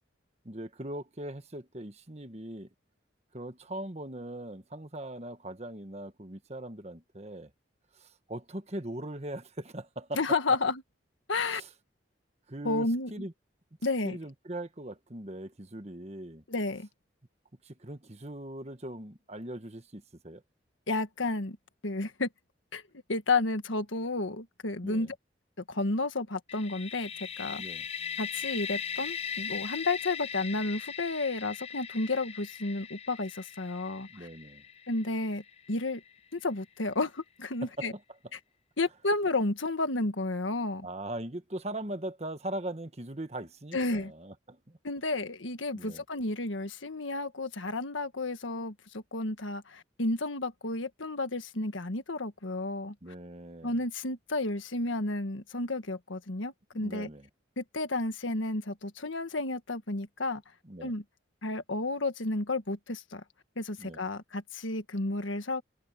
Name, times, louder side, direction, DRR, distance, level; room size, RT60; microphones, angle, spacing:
voice 1, 0.4-2.7 3.3-7.5 7.9-10.4 11.4-11.7 12.5-13.3 14.0-16.4 17.6-20.4 24.8-25.1 27.6-27.9 34.1-34.6 37.6-38.0 40.8-44.8 45.7-46.0 53.0-53.8 56.7-57.3 60.6-60.9 63.8-64.0, right 1 dB, 35° right, 1.4 m, -40 dB
voice 2, 10.1-10.8 11.3-11.6 12.6-13.2 13.8-14.2 16.5-16.9 20.9-21.6 21.8-22.3 22.7-22.8 23.1-25.1 25.6-27.1 27.4-27.6 28.2-34.3 34.9-35.4 35.7-36.0 36.3-37.9 38.8-40.9 43.7-44.1 44.8-52.9 53.6-57.1 57.6-60.4 60.8-61.0 61.4-63.2 63.6-65.6, left 2 dB, 85° left, 1.6 m, -31 dB
sound 1, 26.5-36.2, left 7 dB, 30° left, 0.8 m, -39 dB
head